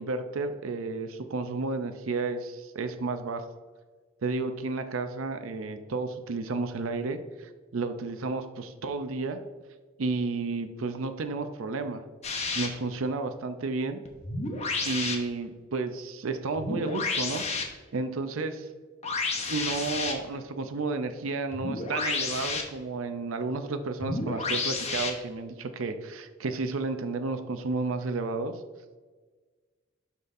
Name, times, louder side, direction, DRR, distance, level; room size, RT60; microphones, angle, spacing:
voice 1, 0.0-3.5 4.2-9.4 10.0-12.0 12.5-14.0 14.8-17.4 17.9-18.7 19.5-28.6, right 3 dB, 70° right, 8 dB, 0.5 m, -32 dB
sound 1, 12.2-12.7 14.0-15.1 16.5-17.6 19.0-20.1 21.5-22.6 24.0-25.1, left 3 dB, 30° left, 0.9 m, -31 dB
11.5 x 4.1 x 2.6 m, 1.4 s
head